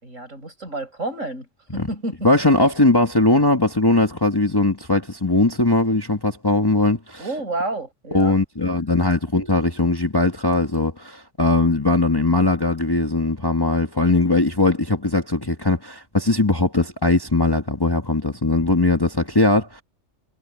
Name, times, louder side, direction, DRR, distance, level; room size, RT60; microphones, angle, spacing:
voice 1, 0.0-1.5 1.7-2.3 7.2-8.4, right 2 dB, 85° right, 7.9 m, -30 dB
voice 2, 2.2-7.3 8.1-19.8, left 2 dB, 20° left, 1.5 m, -20 dB
omnidirectional pair, 1.3 m